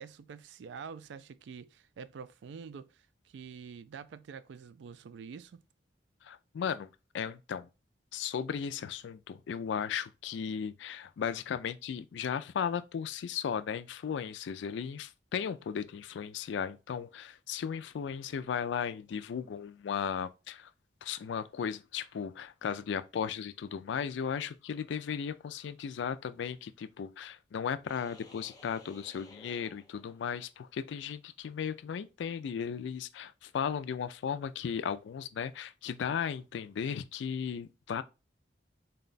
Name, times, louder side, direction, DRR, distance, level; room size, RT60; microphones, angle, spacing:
voice 1, 0.0-5.6, right 6 dB, 75° right, 0.3 m, -47 dB
voice 2, 6.2-7.7 8.1-20.7 21.0-38.0, left 7 dB, 80° left, 0.3 m, -36 dB
sound 1, 27.9-30.5, left 3 dB, 20° left, 0.5 m, -56 dB
4.0 x 2.2 x 3.8 m
head